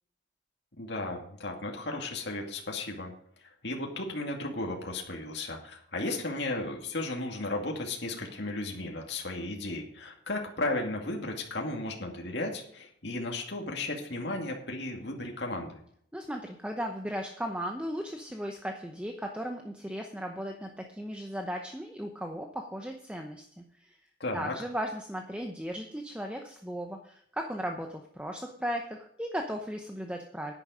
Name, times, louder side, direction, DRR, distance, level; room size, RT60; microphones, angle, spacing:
voice 1, 0.8-3.1 3.4-15.8 24.2-24.5, left 2 dB, 60° left, 1 dB, 2.4 m, -35 dB
voice 2, 16.1-24.0 24.3-30.5, equal, 5° right, 3 dB, 0.8 m, -36 dB
10.5 x 10.0 x 5.1 m, 0.66 s
head